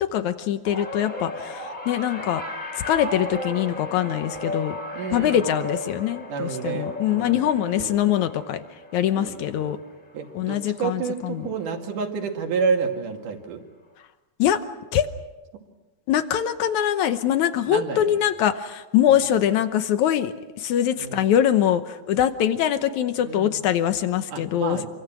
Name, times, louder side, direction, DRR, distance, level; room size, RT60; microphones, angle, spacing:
voice 1, 0.0-2.4 2.8-4.8 5.1-8.6 8.9-9.8 10.3-11.5 14.4-14.6 14.9-15.1 16.1-24.9, left 10 dB, 80° left, 9 dB, 1.7 m, -23 dB
sound 1, 0.6-11.1 11.4-11.8 13.0-13.1, left 1 dB, 15° left, 2.6 m, -36 dB
voice 2, 4.9-5.5 6.3-8.0 9.1-9.8 10.1-13.6 17.7-18.2 19.1-19.3 21.0-21.3 23.2-23.6 24.3-24.9, right 5 dB, 55° right, 3 dB, 3.7 m, -30 dB
28.0 x 24.5 x 6.2 m, 1.1 s
omnidirectional pair, 4.7 m